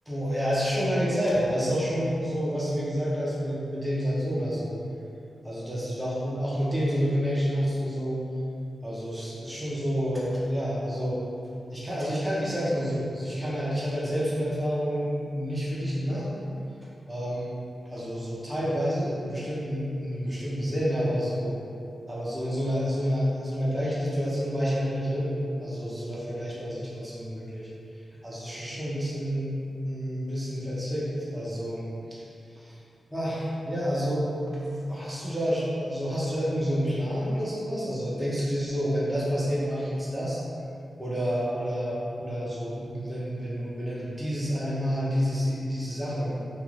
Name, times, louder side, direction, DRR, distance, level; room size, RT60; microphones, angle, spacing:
voice 1, 0.1-4.7 5.4-8.2 8.8-11.2 11.7-16.3 17.1-17.5 17.9-21.5 22.1-27.7 28.2-29.5 29.8-31.8 32.1-32.2 32.5-32.8 33.1-34.2 34.6-40.4 41.0-46.3, equal, 10° right, -8 dB, 0.7 m, -29 dB
3.1 x 2.5 x 2.4 m, 2.5 s
wide cardioid pair, 115°, 0 cm